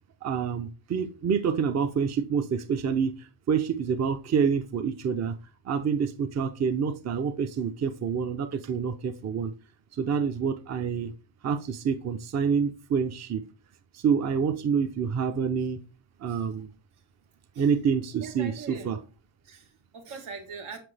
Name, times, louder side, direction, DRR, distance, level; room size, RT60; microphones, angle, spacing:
voice 1, 0.2-5.3 5.6-9.5 9.9-11.1 11.4-13.4 13.9-15.8 16.2-16.7 17.6-19.0, right 6 dB, 35° right, 0.6 m, -27 dB
voice 2, 18.2-18.9 19.4-20.8, right 5 dB, 80° right, 1.8 m, -42 dB
5.9 x 5.3 x 3.3 m
cardioid pair, 95°, 49 cm